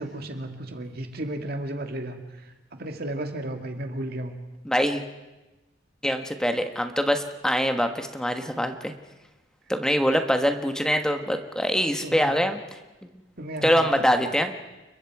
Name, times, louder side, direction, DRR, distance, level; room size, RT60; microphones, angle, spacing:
voice 1, 0.0-2.5 2.8-4.3 12.0-12.4 13.4-14.2, right 1 dB, 55° right, 5 dB, 2.2 m, -34 dB
voice 2, 4.6-5.0 6.0-8.9 9.7-12.6 13.0-13.1 13.6-14.5, equal, 5° left, 6 dB, 1.3 m, -24 dB
29.5 x 22.0 x 4.8 m, 1.1 s
head